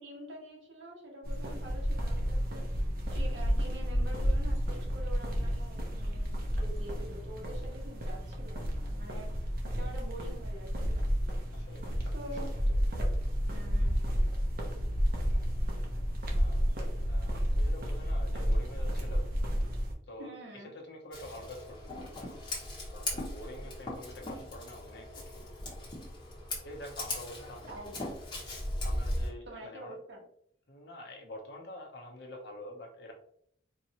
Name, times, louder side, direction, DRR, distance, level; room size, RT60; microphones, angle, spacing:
voice 1, 0.0-2.8 3.1-9.3 9.7-11.0 12.1-12.6 13.5-14.0 20.2-20.7 27.7-28.2 29.4-30.2, right 1 dB, 90° right, -2 dB, 1.4 m, -46 dB
sound 1, 1.2-19.9, equal, 55° right, 0.9 m, -31 dB
voice 2, 11.5-12.8 16.3-19.2 20.1-20.3 20.7-22.4 22.9-25.5 26.6-27.6 28.8-30.0 30.7-33.1, left 1 dB, 65° left, 1 dB, 1.0 m, -47 dB
Scissors, 21.1-29.3, left 1 dB, 25° left, 1.2 m, -38 dB
4.5 x 2.7 x 2.9 m, 0.68 s
head